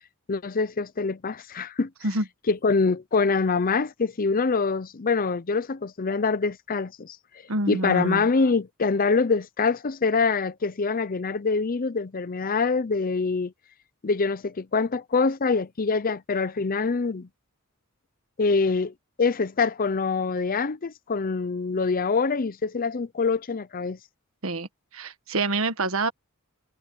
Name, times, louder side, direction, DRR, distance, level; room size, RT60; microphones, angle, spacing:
voice 1, 0.3-1.9 2.5-7.2 7.7-13.5 14.0-17.3 18.4-24.0, left 4 dB, 40° left, 0.6 m, -25 dB
voice 2, 7.5-8.3 24.4-26.1, right 2 dB, 70° right, 1.6 m, -27 dB
head